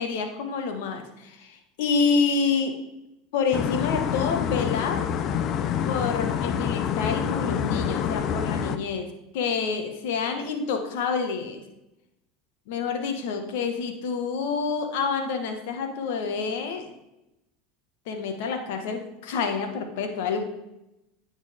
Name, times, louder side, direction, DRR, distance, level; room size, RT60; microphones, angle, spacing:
voice 1, 0.0-2.8 3.3-5.1 5.8-11.6 12.7-16.9 18.1-20.5, left 5 dB, 70° left, 5 dB, 1.8 m, -28 dB
sound 1, 3.5-8.8, left 8 dB, 45° left, 0.8 m, -27 dB
10.0 x 8.7 x 3.7 m, 0.89 s
hypercardioid pair, 90°, 0 cm